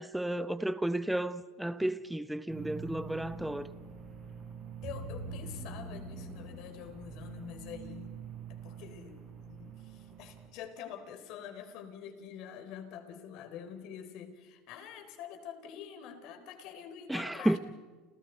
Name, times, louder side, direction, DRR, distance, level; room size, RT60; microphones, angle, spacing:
voice 1, 0.0-3.7 17.1-17.6, right 1 dB, 5° right, 0.8 m, -32 dB
sound 1, 2.5-10.5, right 4 dB, 35° right, 7.4 m, -44 dB
voice 2, 4.8-8.2 8.6-17.6, left 8 dB, 65° left, 3.6 m, -46 dB
30.0 x 29.0 x 4.5 m
cardioid pair, 135°, 0 cm